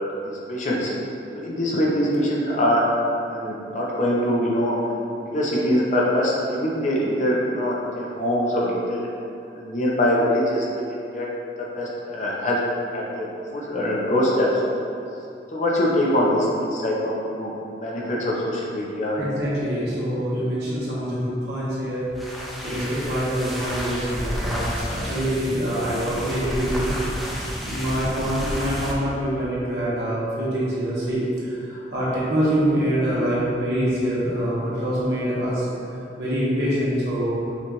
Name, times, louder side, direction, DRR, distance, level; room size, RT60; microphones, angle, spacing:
voice 1, 0.2-0.9 1.3-2.8 3.3-4.8 5.2-9.1 9.6-11.3 11.6-12.6 12.9-14.6 15.5-17.5 17.8-19.2, equal, 40° left, -4 dB, 0.6 m, -23 dB
voice 2, 19.2-22.3 22.6-35.7 36.2-37.4, equal, 70° right, -8 dB, 1.1 m, -25 dB
sound 1, 22.0-29.0, equal, ahead, 0.4 m, -31 dB
5.8 x 2.4 x 2.9 m, 2.7 s
head